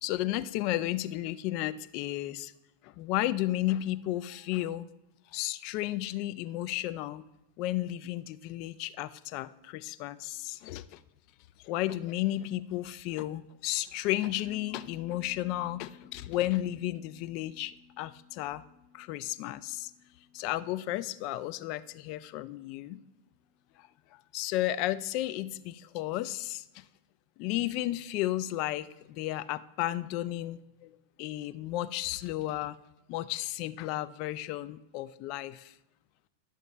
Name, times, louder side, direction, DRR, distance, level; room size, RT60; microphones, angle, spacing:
voice 1, 0.0-2.5 2.8-4.9 5.3-7.2 7.6-11.0 11.6-18.6 18.9-19.9 20.3-23.0 23.8-23.9 24.3-26.8 27.4-30.9 31.2-32.8 33.1-35.7, left 15 dB, 45° left, 13 dB, 0.3 m, -33 dB
Bass guitar, 14.4-23.7, left 7 dB, 70° left, 2.3 m, -58 dB
9.7 x 6.4 x 3.2 m, 0.91 s
figure-of-eight pair, 90°, 0 cm